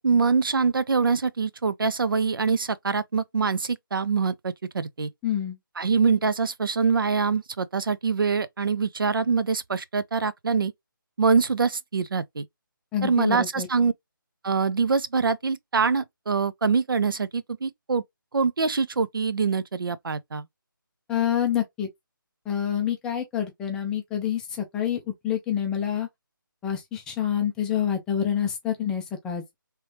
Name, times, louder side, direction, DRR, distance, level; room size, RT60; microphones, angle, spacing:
voice 1, 0.0-5.1 5.8-10.7 11.2-12.5 13.0-13.9 14.4-18.0 18.3-20.5, right 5 dB, 75° right, 0.5 m, -24 dB
voice 2, 5.2-5.6 12.9-13.7 21.1-21.9 22.5-26.1 26.6-29.5, left 9 dB, 5° left, 0.5 m, -27 dB
3.3 x 3.1 x 2.8 m
figure-of-eight pair, 160°, 12 cm